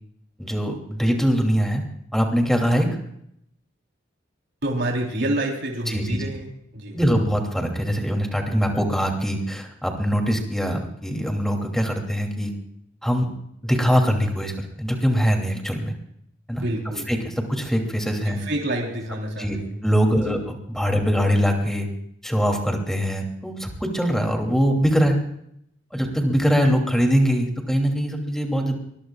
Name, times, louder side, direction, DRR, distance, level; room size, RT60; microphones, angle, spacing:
voice 1, 0.4-1.8 2.1-2.9 5.9-6.2 6.9-12.5 13.0-13.3 13.6-15.9 16.5-16.6 17.1-18.4 19.4-21.9 22.2-25.2 25.9-28.8, equal, 5° left, 2 dB, 2.9 m, -22 dB
voice 2, 4.6-7.0 16.6-17.1 18.4-19.7 20.1-20.4, right 1 dB, 65° right, 0 dB, 3.7 m, -28 dB
23.5 x 21.5 x 2.4 m, 0.73 s
head